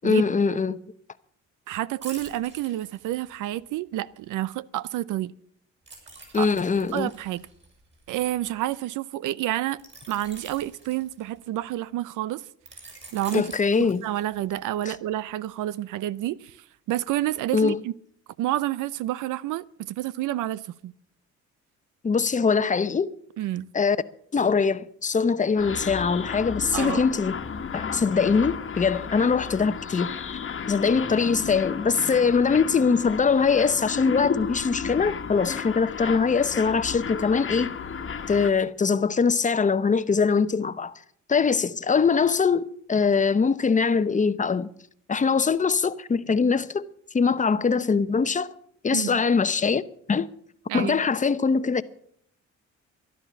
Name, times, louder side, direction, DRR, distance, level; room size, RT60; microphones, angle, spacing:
voice 1, 0.0-0.8 6.3-7.1 13.3-14.0 14.9-15.0 17.5-17.8 22.0-23.1 23.7-24.0 24.3-27.4 27.7-30.2 30.7-37.7 38.3-40.9 41.3-44.7 45.1-46.9 47.1-48.5 48.8-49.8 50.1-50.3 50.7-51.8, left 5 dB, 25° left, 0.8 m, -22 dB
voice 2, 1.7-5.3 6.4-6.5 6.9-7.4 8.1-9.8 10.1-12.4 13.1-13.5 13.8-16.5 16.9-17.9 18.4-20.9 23.4-23.7 26.7-27.0 48.9-49.2 50.7-51.0, right 14 dB, 85° right, 0.6 m, -29 dB
sound 1, 2.0-3.6 5.9-8.6 9.8-11.6 12.7-14.5 14.9-15.1, right 3 dB, 40° right, 7.6 m, -46 dB
sound 2, 25.6-38.5, left 6 dB, 45° left, 1.4 m, -33 dB
12.5 x 11.5 x 7.1 m
cardioid pair, 90°, 30 cm